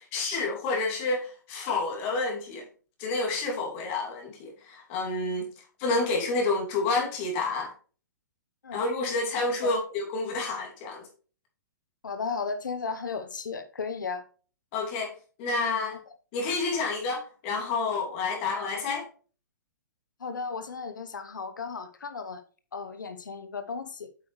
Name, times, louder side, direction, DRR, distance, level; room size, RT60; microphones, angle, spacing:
voice 1, 0.0-2.7 3.0-5.5 5.8-7.7 8.7-11.1 14.7-16.0 16.3-19.1, left 3 dB, 40° left, 2.5 m, -29 dB
voice 2, 12.0-14.2 18.6-18.7 20.2-22.4 22.7-24.1, left 5 dB, 85° left, 0.9 m, -35 dB
8.4 x 5.9 x 3.1 m
hypercardioid pair, 130°, 10 cm